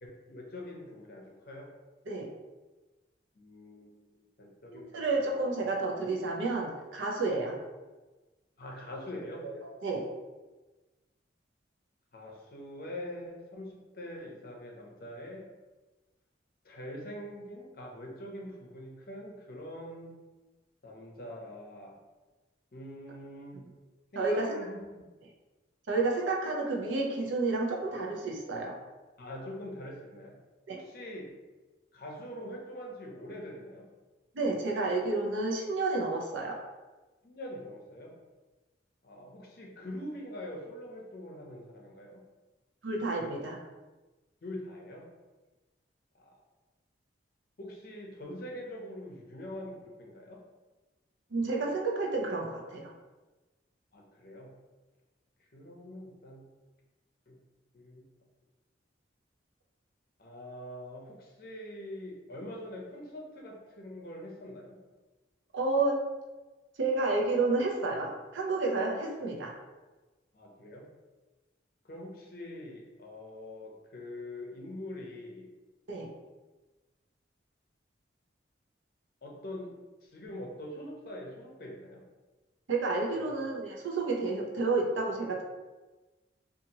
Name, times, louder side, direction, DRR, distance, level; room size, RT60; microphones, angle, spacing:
voice 1, 0.0-1.7 3.3-5.3 8.6-9.5 12.1-15.4 16.6-20.1 20.8-21.9 22.7-23.6 24.1-25.1 29.2-30.3 30.7-31.3 31.9-33.8 37.2-38.1 39.0-42.2 44.4-45.1 46.1-46.3 47.6-50.4 53.9-54.5 55.5-56.5 57.3-57.4 57.7-58.0 60.2-64.8 70.3-70.8 71.9-75.5 79.2-79.7 80.0-82.0 83.1-83.3, left 1 dB, 50° left, -1 dB, 0.6 m, -44 dB
voice 2, 4.7-7.6 9.8-10.1 24.2-24.6 25.9-28.7 30.7-30.8 34.3-36.6 42.8-43.6 51.3-52.9 65.5-66.0 66.8-69.5 75.9-76.1 82.7-85.4, right 3 dB, 90° right, 0 dB, 0.6 m, -30 dB
2.7 x 2.4 x 2.8 m, 1.2 s
head